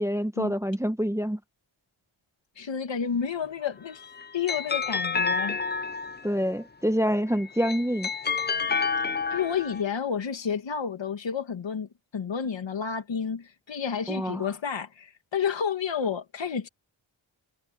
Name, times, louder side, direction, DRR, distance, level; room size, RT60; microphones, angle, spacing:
voice 1, 0.0-1.4 6.2-8.1 14.1-14.4, equal, 5° right, 0.8 m, -26 dB
voice 2, 2.5-4.0 4.3-5.6 9.3-16.7, left 7 dB, 65° left, 1.8 m, -30 dB
sound 1, 3.8-6.4 7.4-9.8, left 5 dB, 25° left, 0.4 m, -29 dB
wide cardioid pair, 130°, 48 cm